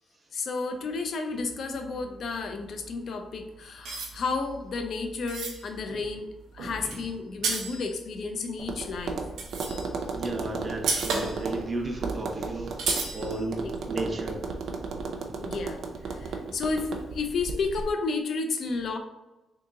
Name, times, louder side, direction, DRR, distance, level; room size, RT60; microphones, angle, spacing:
voice 1, 0.3-9.2 13.6-13.7 15.4-19.0, left 4 dB, 65° left, 6 dB, 0.5 m, -32 dB
sound 1, 1.3-3.4 3.9-8.3 8.9-10.1 10.3-10.4 10.7-11.7 11.9-12.0 12.2-12.3 12.8-13.4, right 4 dB, 85° right, 0.9 m, -34 dB
Tap, 8.6-17.9, right 4 dB, 65° right, 0.5 m, -35 dB
voice 2, 10.1-12.8 13.1-14.4, right 2 dB, 35° right, 1 dB, 0.8 m, -34 dB
3.5 x 2.9 x 3.7 m, 1.1 s
cardioid pair, 80°, 0 cm